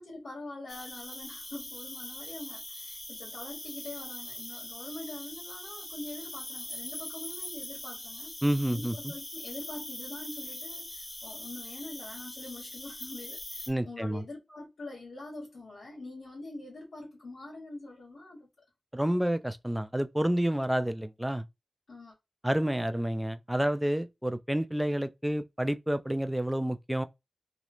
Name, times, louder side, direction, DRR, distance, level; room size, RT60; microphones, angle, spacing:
voice 1, 0.0-8.3 8.7-18.5 21.9-22.1, left 2 dB, 90° left, 1.2 m, -44 dB
Cricket, 0.7-13.7, left 1 dB, 35° left, 0.8 m, -42 dB
voice 2, 8.4-9.1 13.7-14.2 18.9-21.5 22.4-27.1, right 1 dB, 10° right, 0.3 m, -29 dB
3.0 x 2.0 x 2.4 m
cardioid pair, 55°, 0 cm